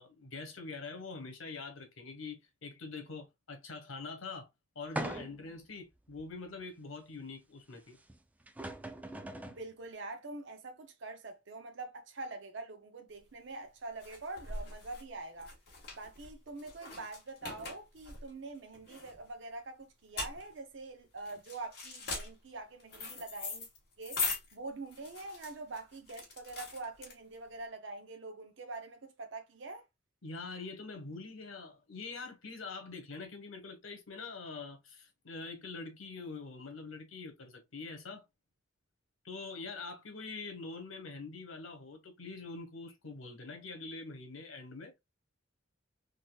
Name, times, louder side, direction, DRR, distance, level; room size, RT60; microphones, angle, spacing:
voice 1, 0.0-4.5 4.7-8.0 30.2-38.2 39.2-44.9, left 3 dB, 85° left, 1.2 m, -44 dB
sound 1, 5.0-5.6 6.2-6.3 8.1-8.2 8.5-9.6, right 1 dB, 10° right, 0.3 m, -40 dB
voice 2, 9.5-15.5 16.0-23.7 24.0-24.2 24.5-29.8, right 3 dB, 65° right, 0.7 m, -45 dB
sound 2, 13.2-27.6, left 3 dB, 55° left, 1.5 m, -42 dB
3.9 x 2.7 x 2.3 m
head